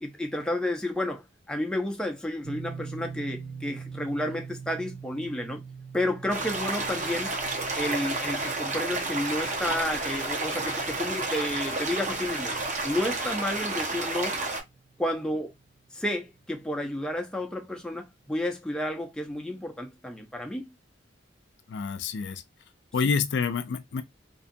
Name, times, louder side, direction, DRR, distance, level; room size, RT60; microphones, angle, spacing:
voice 1, 0.0-5.6 5.9-7.3 7.8-12.5 12.8-14.4 15.0-15.5 15.9-20.7, left 1 dB, 5° left, 0.5 m, -31 dB
sound 1, 2.4-15.3, right 5 dB, 70° right, 0.8 m, -44 dB
sound 2, 6.3-14.6, right 2 dB, 40° right, 0.7 m, -31 dB
voice 2, 21.7-22.4 22.9-24.0, left 5 dB, 65° left, 0.4 m, -28 dB
2.6 x 2.3 x 2.5 m
head